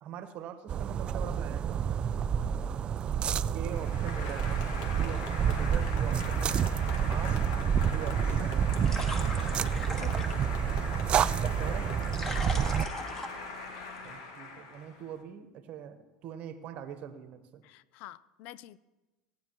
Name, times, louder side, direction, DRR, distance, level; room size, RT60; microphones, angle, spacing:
voice 1, 0.0-2.0 3.5-6.8 7.0-7.5 7.8-8.7 11.5-11.9 14.0-17.6, right 9 dB, 55° right, 10 dB, 1.1 m, -43 dB
sound 1, 0.7-12.9, right 8 dB, 40° right, 0.4 m, -29 dB
Applause, 3.7-15.2, left 3 dB, 80° left, 2.0 m, -41 dB
sound 2, 8.2-14.1, left 1 dB, 15° left, 1.8 m, -42 dB
voice 2, 9.9-10.5 12.3-12.6 17.6-18.8, left 14 dB, 60° left, 19 dB, 0.4 m, -48 dB
17.5 x 9.4 x 3.0 m, 1.1 s
hypercardioid pair, 90°, 3 cm